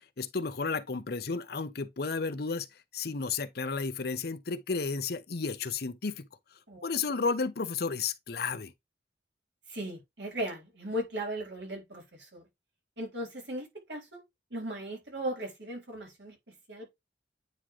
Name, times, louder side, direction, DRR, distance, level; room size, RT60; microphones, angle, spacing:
voice 1, 0.0-2.7 2.9-6.3 6.8-8.7, left 4 dB, 60° left, 0.8 m, -32 dB
voice 2, 9.7-12.4 13.0-14.2 14.5-16.4 16.7-16.9, right 1 dB, 85° right, 3.7 m, -37 dB
9.5 x 3.6 x 3.1 m
head